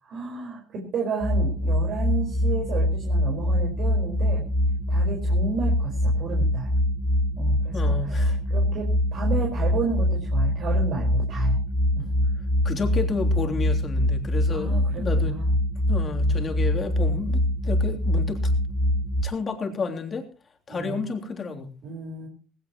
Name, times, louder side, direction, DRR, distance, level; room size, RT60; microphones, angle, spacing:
voice 1, 0.0-4.4 4.9-6.7 7.4-11.6 11.9-12.3 14.5-15.5 20.7-21.0 21.8-22.3, right 4 dB, 55° right, -1 dB, 5.0 m, -32 dB
sound 1, 1.2-19.2, left 1 dB, 15° left, 2.7 m, -24 dB
voice 2, 7.7-8.4 12.6-15.3 15.9-18.4 19.2-20.3 20.7-21.7, left 4 dB, 35° left, 3 dB, 3.4 m, -31 dB
18.5 x 17.0 x 3.1 m, 0.36 s
supercardioid pair, 95°, 0 cm